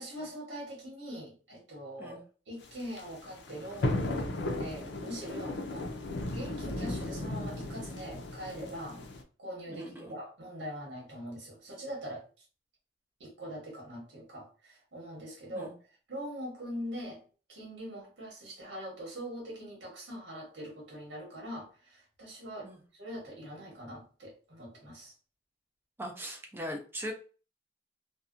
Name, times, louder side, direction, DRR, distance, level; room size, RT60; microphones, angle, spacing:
voice 1, 0.0-5.9 6.3-9.0 9.4-12.4 13.2-15.7 16.1-17.2 17.5-25.1, equal, 75° right, -2 dB, 1.1 m, -42 dB
sound 1, 2.6-9.2, left 1 dB, 75° left, 0.5 m, -36 dB
voice 2, 9.7-10.1 15.5-15.7 22.6-22.8 26.0-27.1, equal, 10° right, 2 dB, 0.5 m, -40 dB
2.7 x 2.2 x 2.5 m, 0.37 s
head